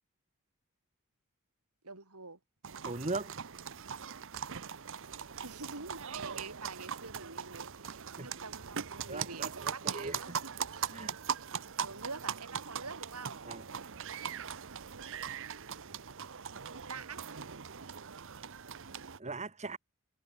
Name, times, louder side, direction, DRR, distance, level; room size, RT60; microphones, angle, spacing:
voice 1, 1.8-2.4 5.4-11.0 11.8-13.4 14.9-15.9 16.7-17.2, right 4 dB, 85° right, 5.7 m, -47 dB
sound 1, 2.6-19.2, right 7 dB, 60° right, 1.0 m, -40 dB
voice 2, 2.8-3.3 8.2-8.3 9.1-10.4 10.9-11.2 13.5-13.6 19.2-19.8, right 3 dB, 30° right, 1.9 m, -39 dB
head